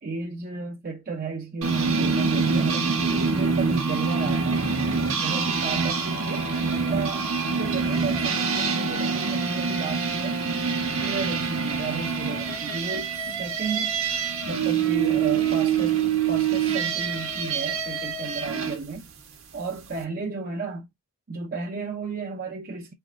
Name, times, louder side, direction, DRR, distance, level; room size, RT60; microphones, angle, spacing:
voice 1, 0.0-4.7 5.2-10.4 11.0-14.0 14.5-16.0 16.3-19.1 19.5-20.9 21.3-22.9, right 4 dB, 40° right, 0.6 m, -33 dB
sound 1, 1.6-18.8, right 5 dB, 65° right, 1.1 m, -25 dB
3.6 x 3.4 x 2.4 m
head